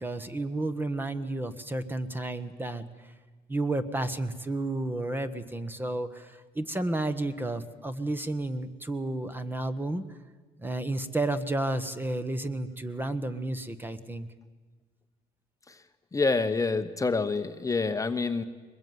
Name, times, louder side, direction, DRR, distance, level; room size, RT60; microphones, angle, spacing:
voice 1, 0.0-2.8 3.5-10.0 10.6-14.3, right 2 dB, 10° right, 10 dB, 1.3 m, -31 dB
voice 2, 16.1-18.4, left 4 dB, 20° left, 8 dB, 1.1 m, -27 dB
22.5 x 20.5 x 9.5 m, 1.4 s
cardioid pair, 110°, 17 cm